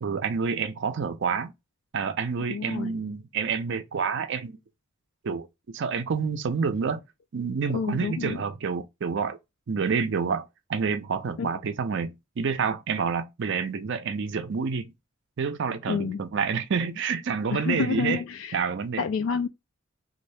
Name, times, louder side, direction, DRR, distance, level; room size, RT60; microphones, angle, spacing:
voice 1, 0.0-1.5 1.9-4.6 5.2-7.0 7.3-9.4 9.7-14.9 15.4-18.2 18.5-19.1, right 5 dB, 60° right, 0.5 m, -28 dB
voice 2, 2.5-2.9 7.7-8.4 11.4-11.5 15.9-16.2 17.5-18.6 19.0-19.5, left 5 dB, 65° left, 0.3 m, -29 dB
2.6 x 2.5 x 3.1 m
head